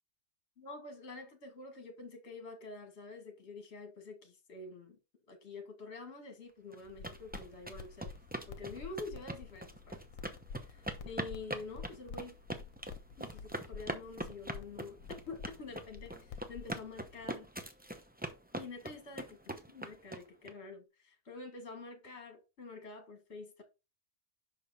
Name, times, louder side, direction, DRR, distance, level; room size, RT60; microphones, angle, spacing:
voice 1, 0.6-5.0 5.3-8.1 8.5-10.0 10.6-12.4 13.2-15.0 15.3-17.5 18.5-19.4 19.7-23.6, left 3 dB, 50° left, 1.8 m, -47 dB
sound 1, 6.7-20.5, right 1 dB, 10° right, 0.6 m, -42 dB
sound 2, 6.9-17.3, left 5 dB, 75° left, 1.3 m, -50 dB
5.9 x 5.2 x 4.1 m
omnidirectional pair, 1.4 m